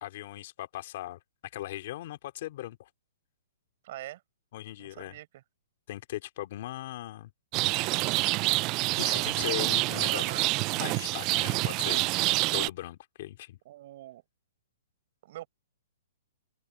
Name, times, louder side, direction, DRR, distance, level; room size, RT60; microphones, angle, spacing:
voice 1, 0.0-1.2 1.5-2.9 4.5-5.2 5.9-7.3 9.0-13.6, left 14 dB, 40° left, 2.8 m, -39 dB
voice 2, 3.8-4.2 4.8-5.4 10.1-10.4 13.7-14.2 15.2-15.5, right 14 dB, 40° right, 5.2 m, -44 dB
Rain, 7.5-12.7, right 22 dB, 25° right, 0.3 m, -27 dB
hypercardioid pair, 170°, 0 cm